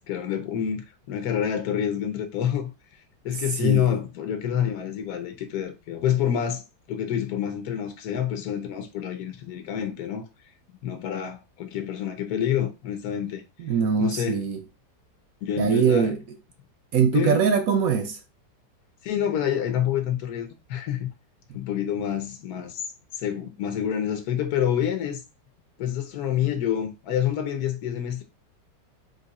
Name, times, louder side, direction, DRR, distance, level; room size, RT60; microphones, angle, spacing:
voice 1, 0.1-2.7 3.2-10.2 10.8-13.4 14.0-14.4 15.4-16.1 17.1-17.4 19.0-21.1 21.5-22.8 23.1-25.2 25.8-28.2, left 9 dB, 65° left, 1.2 m, -27 dB
voice 2, 3.6-4.0 13.6-14.6 15.6-16.2 16.9-18.2, right 6 dB, 65° right, 0.9 m, -22 dB
3.9 x 2.7 x 4.0 m
omnidirectional pair, 1.9 m